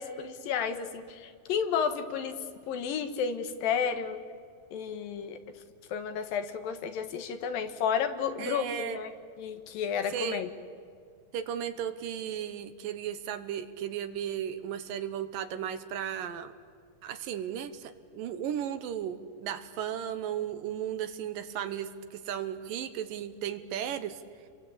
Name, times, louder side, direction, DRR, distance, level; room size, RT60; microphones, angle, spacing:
voice 1, 0.0-2.3 2.7-4.2 4.7-5.4 5.9-9.1 9.4-10.5, left 7 dB, 75° left, 8 dB, 3.1 m, -32 dB
voice 2, 8.4-9.0 10.1-10.5 11.3-16.5 17.0-24.2, right 9 dB, 75° right, 11 dB, 2.7 m, -35 dB
30.0 x 22.5 x 8.7 m, 2.1 s
omnidirectional pair, 4.2 m